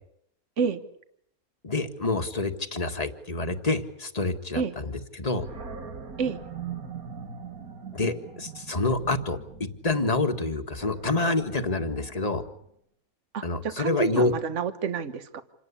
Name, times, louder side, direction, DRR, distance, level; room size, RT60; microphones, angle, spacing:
voice 1, 1.6-5.5 7.9-9.4 9.8-12.4 13.4-14.3, left 2 dB, 25° left, 7 dB, 1.8 m, -27 dB
Animal, 5.4-12.5, right 6 dB, 85° right, 2.4 m, -42 dB
voice 2, 13.3-15.4, right 6 dB, 55° right, 10 dB, 1.6 m, -29 dB
27.5 x 18.5 x 8.6 m, 0.73 s
omnidirectional pair, 1.5 m